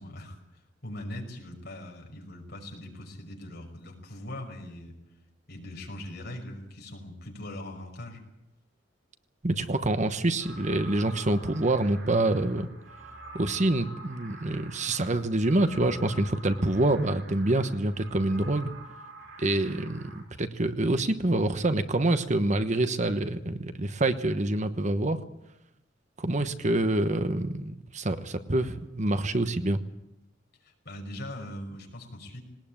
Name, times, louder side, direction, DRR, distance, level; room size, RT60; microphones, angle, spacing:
voice 1, 0.0-4.9 5.5-8.2 30.6-32.4, left 1 dB, 60° left, 3 dB, 5.7 m, -41 dB
voice 2, 9.4-12.7 13.3-18.7 19.4-25.2 26.2-29.8, right 2 dB, 40° right, 10 dB, 1.1 m, -26 dB
sound 1, 10.4-20.2, right 2 dB, 85° right, 7.5 m, -46 dB
20.5 x 19.5 x 8.9 m, 0.88 s
head